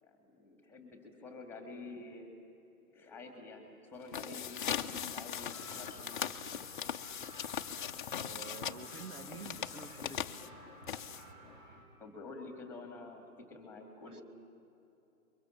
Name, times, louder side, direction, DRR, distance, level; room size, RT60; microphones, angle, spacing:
voice 1, 0.0-2.3 2.9-6.3 12.0-14.2, left 3 dB, 5° left, 4 dB, 2.3 m, -49 dB
sound 1, 4.0-11.5, left 9 dB, 35° left, 0.8 m, -40 dB
sound 2, 4.2-11.8, right 1 dB, 30° right, 4.8 m, -55 dB
voice 2, 8.1-10.7 14.0-14.2, right 5 dB, 80° right, 8 dB, 2.3 m, -49 dB
29.5 x 23.0 x 7.3 m, 2.8 s
hypercardioid pair, 160°, 45 cm